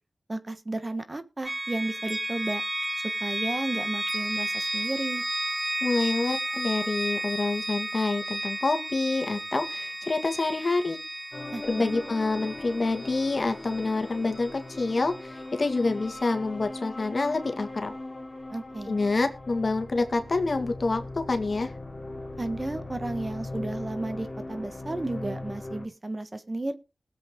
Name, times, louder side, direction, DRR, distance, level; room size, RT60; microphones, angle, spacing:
voice 1, 0.3-2.6 3.2-5.2 11.5-12.0 18.5-19.0 22.4-26.7, right 2 dB, 30° right, 10 dB, 1.4 m, -33 dB
sound 1, 1.5-15.3, right 1 dB, 15° right, 0.9 m, -33 dB
voice 2, 5.8-11.0 11.6-17.9 18.9-21.7, left 3 dB, 50° left, 7 dB, 1.9 m, -27 dB
sound 2, 11.3-25.9, left 2 dB, 30° left, 3.0 m, -39 dB
20.5 x 7.7 x 3.7 m, 0.30 s
wide cardioid pair, 95°, 0 cm